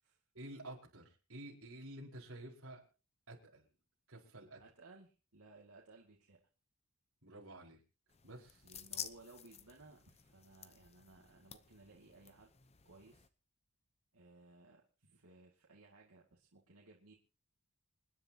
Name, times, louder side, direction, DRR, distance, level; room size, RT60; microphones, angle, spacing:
voice 1, 0.3-2.8 3.3-3.7 4.1-4.6 7.2-7.8 8.2-8.6, right 1 dB, 65° right, -2 dB, 5.0 m, -51 dB
voice 2, 4.6-6.4 8.6-12.5 12.8-13.3 14.1-17.2, right 3 dB, 85° right, -1 dB, 2.3 m, -60 dB
sound 1, 8.1-13.3, left 8 dB, 30° left, 0.8 m, -52 dB
28.0 x 10.0 x 2.9 m, 0.36 s
head